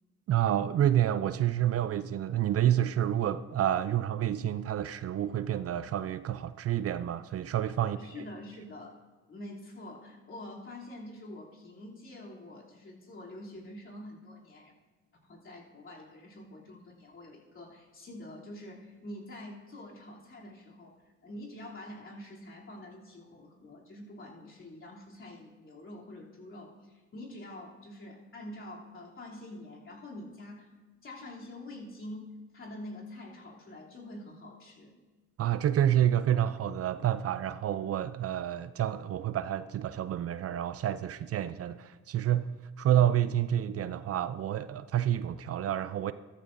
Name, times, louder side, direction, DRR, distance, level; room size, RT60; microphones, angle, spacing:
voice 1, 0.3-8.0 35.4-42.5 42.8-46.1, right 11 dB, 50° right, 14 dB, 0.4 m, -28 dB
voice 2, 7.8-8.9 9.3-14.7 15.2-20.9 21.2-30.7 31.0-34.9, left 1 dB, 40° left, -4 dB, 3.0 m, -46 dB
15.0 x 13.5 x 2.6 m, 1.3 s
cardioid pair, 90°, 30 cm